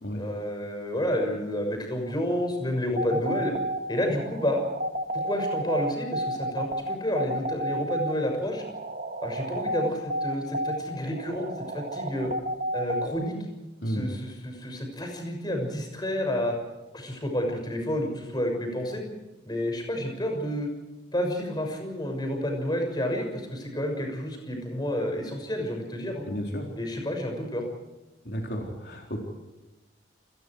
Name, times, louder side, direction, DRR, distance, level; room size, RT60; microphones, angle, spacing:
voice 1, 0.1-3.5 3.9-4.6 5.1-8.6 9.2-11.5 11.7-12.3 12.7-13.4 13.9-16.6 16.9-19.0 19.4-20.7 21.1-26.2 26.8-27.7, equal, 25° left, 3 dB, 6.4 m, -30 dB
sound 1, 2.9-13.1, right 1 dB, 50° right, 2.3 m, -31 dB
voice 2, 26.3-26.7 28.2-29.2, equal, 60° left, 1 dB, 4.1 m, -32 dB
29.0 x 21.5 x 4.8 m, 1.1 s
head